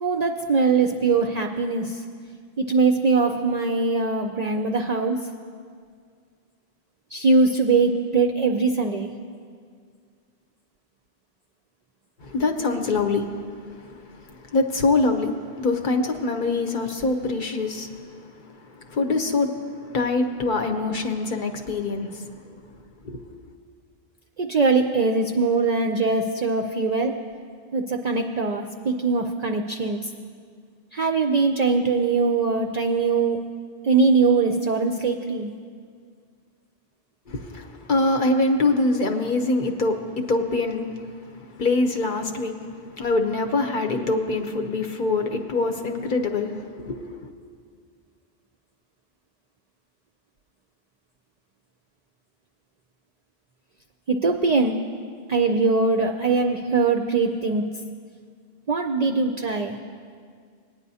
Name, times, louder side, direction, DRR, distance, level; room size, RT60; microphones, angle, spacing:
voice 1, 0.0-2.0 2.6-5.3 7.1-9.1 24.4-27.2 27.7-30.0 30.9-33.5 33.8-35.5 54.1-54.8 55.3-57.6 58.7-59.8, right 4 dB, 55° right, 3 dB, 0.4 m, -22 dB
voice 2, 12.2-13.4 13.9-15.3 15.6-17.9 18.2-18.3 18.8-22.3 23.0-23.2 37.3-41.1 41.4-42.6 42.9-47.3, left 3 dB, 55° left, 4 dB, 0.8 m, -24 dB
19.0 x 9.5 x 2.7 m, 2.1 s
omnidirectional pair, 1.1 m